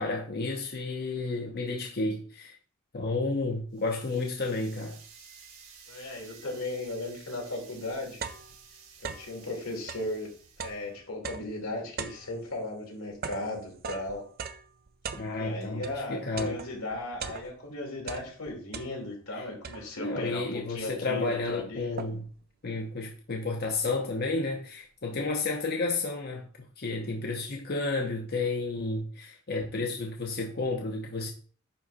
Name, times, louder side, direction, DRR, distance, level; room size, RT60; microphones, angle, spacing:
voice 1, 0.0-2.6 2.9-5.0 15.1-16.6 19.3-19.4 20.0-22.3 22.6-31.3, left 3 dB, 50° left, 0.8 m, -31 dB
sound 1, 3.7-10.9, right 6 dB, 65° right, 2.1 m, -53 dB
voice 2, 5.9-8.2 9.0-10.3 10.6-14.2 15.3-22.0, left 2 dB, 90° left, 3.0 m, -36 dB
sound 2, 7.8-9.4 9.8-16.0 16.4-17.7 18.0-19.3 19.6-20.2 20.8-20.9 21.2-22.4, right 6 dB, 45° right, 0.6 m, -41 dB
9.9 x 3.5 x 4.2 m
head